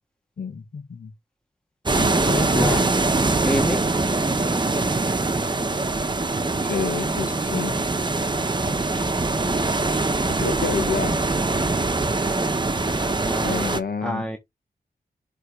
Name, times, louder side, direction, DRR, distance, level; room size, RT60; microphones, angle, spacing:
voice 1, 0.4-1.1 1.9-2.9 6.6-7.8 10.2-11.2 13.4-14.3, left 5 dB, 65° left, 1.6 m, -29 dB
sound 1, 1.9-13.8, right 3 dB, 30° right, 1.1 m, -23 dB
voice 2, 3.4-3.8 13.2-13.7 14.0-14.4, equal, 5° left, 1.5 m, -27 dB
6.6 x 3.6 x 4.9 m
cardioid pair, 60°, 17 cm